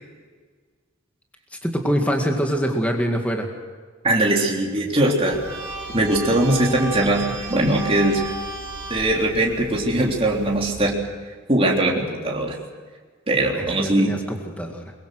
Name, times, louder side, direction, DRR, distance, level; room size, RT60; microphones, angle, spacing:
voice 1, 1.5-3.5 13.5-14.9, equal, 5° left, 2 dB, 2.0 m, -24 dB
voice 2, 4.0-5.4 5.9-8.2 8.9-11.0 11.5-12.6 13.3-14.1, right 1 dB, 30° right, -2 dB, 3.6 m, -20 dB
sound 1, 5.3-10.8, right 2 dB, 60° right, 4.8 m, -34 dB
23.0 x 22.5 x 6.4 m, 1.5 s
head